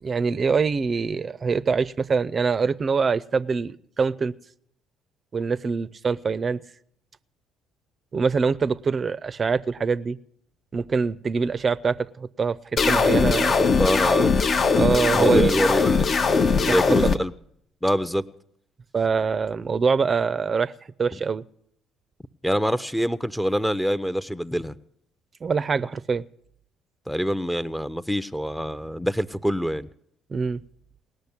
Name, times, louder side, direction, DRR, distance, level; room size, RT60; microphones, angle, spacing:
voice 1, 0.0-4.4 5.3-6.6 8.1-10.2 10.7-12.6 12.9-13.5 14.8-15.6 16.5-17.0 18.9-20.7 21.0-21.4 25.4-26.2 30.3-30.6, right 5 dB, 40° right, 0.5 m, -24 dB
sound 1, 12.8-17.2, left 5 dB, 45° left, 0.7 m, -20 dB
voice 2, 13.6-14.3 14.6-14.9 15.1-17.3 17.8-18.2 21.1-21.2 22.4-24.8 27.1-29.9, equal, 5° left, 0.6 m, -25 dB
18.5 x 6.6 x 9.7 m
hypercardioid pair, 50°, 0 cm